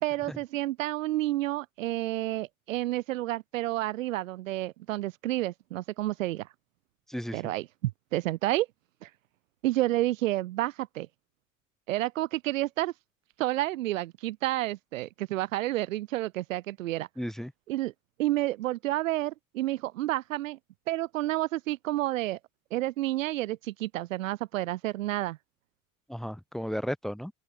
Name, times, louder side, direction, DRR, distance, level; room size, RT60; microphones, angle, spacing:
voice 1, 0.0-6.5 7.3-8.7 9.0-9.1 9.6-11.1 11.9-12.9 13.4-17.1 17.7-17.9 18.2-20.6 20.9-22.4 22.7-25.4, right 16 dB, 80° right, 1.0 m, -30 dB
voice 2, 7.1-7.4 17.2-17.5 26.1-27.3, equal, ahead, 6.7 m, -34 dB
open air
hypercardioid pair, 70°, 39 cm